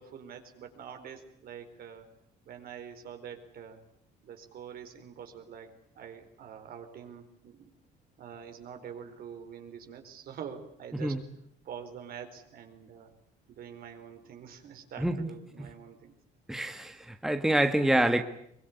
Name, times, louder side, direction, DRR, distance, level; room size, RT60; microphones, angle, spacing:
voice 1, 0.0-2.1 2.4-3.8 4.2-5.7 6.0-7.7 8.2-11.2 11.6-13.1 13.5-16.1, right 8 dB, 60° right, 4.4 m, -45 dB
voice 2, 15.0-15.3 15.6-15.7 16.5-18.2, right 1 dB, 5° right, 1.5 m, -27 dB
23.0 x 22.5 x 9.6 m
cardioid pair, 110°, 17 cm